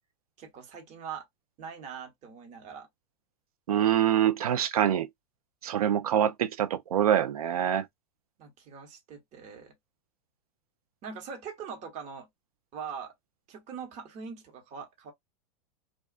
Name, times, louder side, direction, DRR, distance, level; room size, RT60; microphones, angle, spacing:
voice 1, 0.4-1.3 1.6-2.9 8.4-9.7 11.0-12.3 12.7-13.1 13.5-15.1, right 6 dB, 40° right, 1.1 m, -42 dB
voice 2, 3.7-5.1 5.6-7.8, right 10 dB, 90° right, 0.5 m, -25 dB
2.4 x 2.3 x 2.3 m
hypercardioid pair, 120°, 18 cm